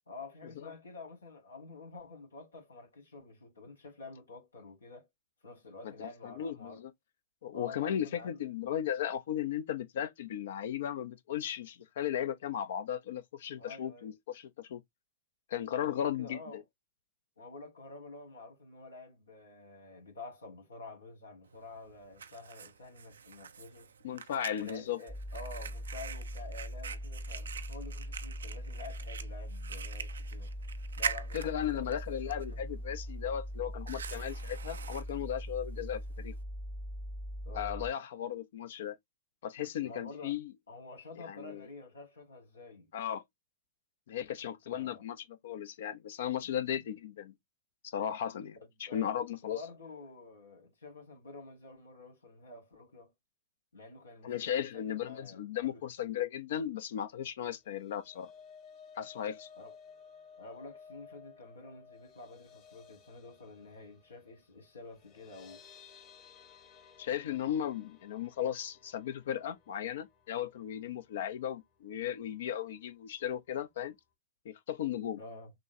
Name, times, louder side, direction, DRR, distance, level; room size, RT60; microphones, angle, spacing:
voice 1, 0.1-5.1 5.4-6.8 7.5-8.4 13.6-14.1 15.8-16.6 17.4-23.9 24.6-30.5 31.0-32.6 37.4-37.9 39.8-40.3 40.7-42.9 44.7-45.0 46.4-46.9 48.9-49.1 49.5-53.1 53.7-55.8 59.6-59.8 60.4-65.6 75.1-75.5, left 3 dB, 90° left, 1.8 m, -49 dB
voice 2, 5.8-6.9 7.4-14.8 15.5-16.6 24.0-25.0 31.3-36.3 37.5-39.0 39.4-40.5 41.2-41.6 42.9-43.2 44.1-47.3 47.8-49.6 54.2-58.3 59.0-59.5 67.0-73.9 74.4-75.2, left 10 dB, 70° left, 0.6 m, -36 dB
Fire, 21.5-36.4, right 7 dB, 85° right, 0.4 m, -45 dB
sound 1, 25.1-37.9, equal, ahead, 0.3 m, -41 dB
sound 2, 57.6-71.8 72.1-72.4 72.7-72.8, left 6 dB, 40° left, 1.4 m, -57 dB
6.1 x 2.1 x 2.6 m
hypercardioid pair, 110°, 0 cm